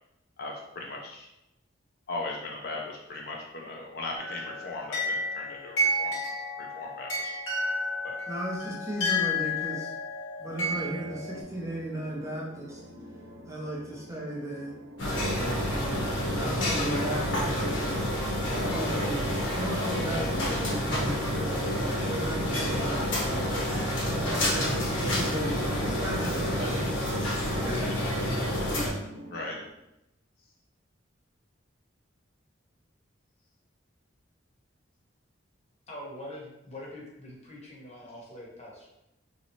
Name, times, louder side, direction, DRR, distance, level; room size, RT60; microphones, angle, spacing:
voice 1, 0.4-1.3 2.1-6.2 6.6-7.3 8.0-8.2 24.5-24.8 28.4-28.5 29.3-29.6, left 2 dB, 50° left, 0 dB, 0.4 m, -38 dB
sound 1, 4.2-11.4, left 1 dB, 90° left, 1.2 m, -31 dB
voice 2, 8.3-9.9 10.4-12.8 13.5-14.7 15.6-18.0 18.5-21.6 22.1-23.5 24.0-27.1 27.6-28.1, right 1 dB, 15° right, -3 dB, 0.5 m, -36 dB
sound 2, 10.4-29.7, equal, 85° right, 0.5 m, -46 dB
sound 3, 15.0-28.9, equal, 70° left, 0.9 m, -28 dB
voice 3, 35.9-38.9, left 1 dB, 35° left, -3 dB, 0.8 m, -43 dB
3.0 x 2.9 x 2.7 m, 0.87 s
head